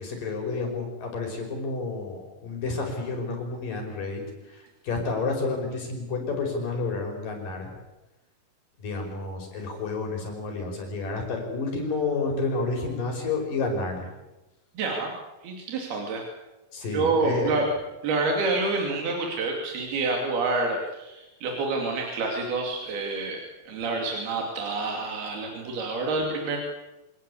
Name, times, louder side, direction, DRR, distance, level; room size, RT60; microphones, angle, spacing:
voice 1, 0.0-4.2 4.5-7.7 8.8-14.1 16.7-17.7, left 3 dB, 60° left, 2 dB, 6.9 m, -30 dB
voice 2, 14.8-15.1 15.4-16.2 16.9-17.7 18.0-23.4 23.7-26.6, right 3 dB, 85° right, 1 dB, 4.7 m, -28 dB
26.0 x 19.0 x 8.5 m, 1.0 s
omnidirectional pair, 4.3 m